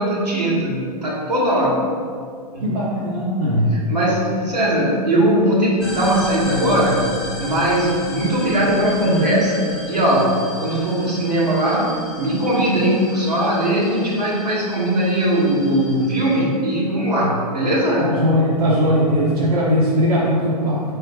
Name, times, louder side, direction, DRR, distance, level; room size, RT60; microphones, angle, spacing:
voice 1, 0.0-1.8 2.5-2.7 3.4-7.1 7.4-18.1, right 1 dB, 90° right, -5 dB, 1.2 m, -19 dB
voice 2, 2.6-3.7 18.0-20.8, equal, 65° right, -5 dB, 0.9 m, -19 dB
sound 1, 5.8-16.4, left 1 dB, ahead, 0.8 m, -35 dB
4.7 x 3.0 x 3.4 m, 2.1 s
hypercardioid pair, 110°, 20 cm